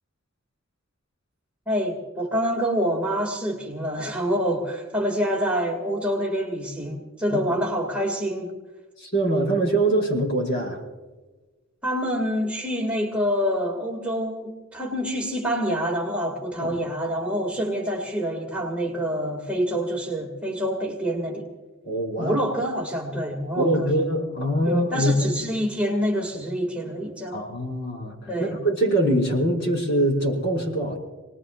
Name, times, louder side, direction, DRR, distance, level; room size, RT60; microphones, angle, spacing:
voice 1, 1.7-8.5 11.8-21.5 22.2-23.9 24.6-27.4 28.3-28.5, equal, 5° right, -1 dB, 2.2 m, -26 dB
voice 2, 9.0-10.8 16.6-16.8 21.8-22.4 23.6-25.4 27.3-31.0, right 1 dB, 50° left, -1 dB, 5.5 m, -23 dB
29.5 x 20.0 x 2.5 m, 1.2 s
head